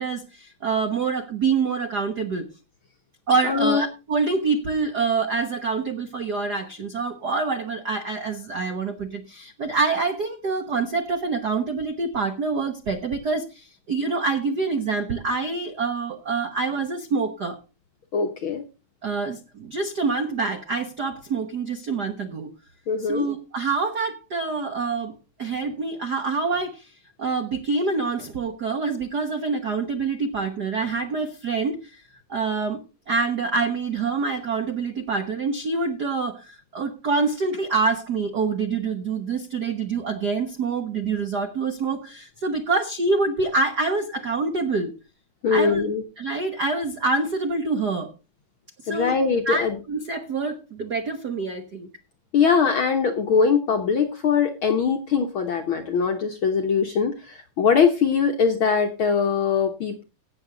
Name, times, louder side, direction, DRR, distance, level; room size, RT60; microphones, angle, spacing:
voice 1, 0.0-2.5 3.3-17.6 19.0-22.5 23.0-25.1 25.4-26.9 27.2-32.0 32.3-32.8 33.1-44.9 45.5-45.8 46.2-48.1 48.8-49.1 49.5-51.9, right 4 dB, 65° right, 6 dB, 1.0 m, -26 dB
voice 2, 3.5-3.8 18.1-18.6 22.9-23.3 45.4-46.0 48.9-49.8 52.3-60.0, left 6 dB, 60° left, 5 dB, 1.3 m, -22 dB
17.0 x 7.2 x 3.9 m, 0.30 s
omnidirectional pair, 3.6 m